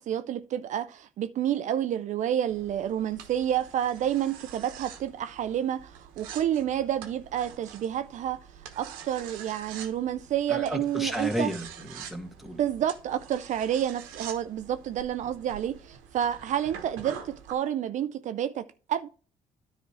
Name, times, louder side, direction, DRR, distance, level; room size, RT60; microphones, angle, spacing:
voice 1, 0.0-8.4 8.8-11.5 12.5-19.1, right 10 dB, 60° right, 0.5 m, -29 dB
sound 1, 2.5-17.5, right 8 dB, 90° right, 1.1 m, -46 dB
voice 2, 10.5-12.6, equal, ahead, 1.8 m, -33 dB
10.0 x 4.3 x 4.8 m
supercardioid pair, 65°, 14 cm